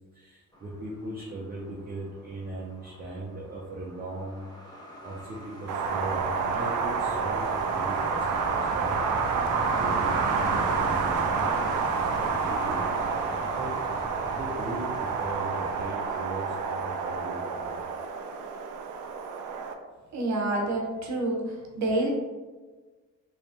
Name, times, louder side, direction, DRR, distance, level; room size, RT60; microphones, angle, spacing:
voice 1, 0.1-4.7 5.0-8.9 9.3-11.5 12.0-12.9 13.5-13.7 14.4-17.8, right 2 dB, 30° right, -4 dB, 0.7 m, -39 dB
Truck, 0.5-17.9, equal, 15° left, 0.8 m, -45 dB
Wind, 5.7-19.7, right 5 dB, 80° right, 0.5 m, -29 dB
Wind / Waves surf, 5.8-15.8, equal, 75° left, 1.1 m, -39 dB
voice 2, 20.1-22.1, right 2 dB, 65° right, 1 dB, 0.9 m, -28 dB
3.3 x 3.1 x 2.7 m, 1.3 s
cardioid pair, 90°, 30 cm